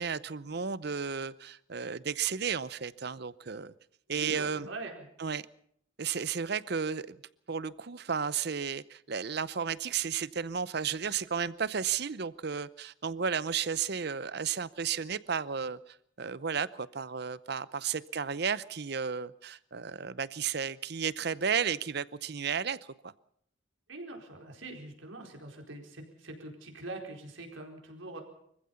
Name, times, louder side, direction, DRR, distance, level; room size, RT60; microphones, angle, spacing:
voice 1, 0.0-3.7 4.1-4.7 5.2-5.5 6.0-7.2 7.5-22.8 23.0-23.1, right 6 dB, 55° right, 0.7 m, -33 dB
voice 2, 4.1-5.1 23.9-28.2, right 2 dB, 85° right, 4.6 m, -43 dB
24.5 x 15.0 x 7.1 m
head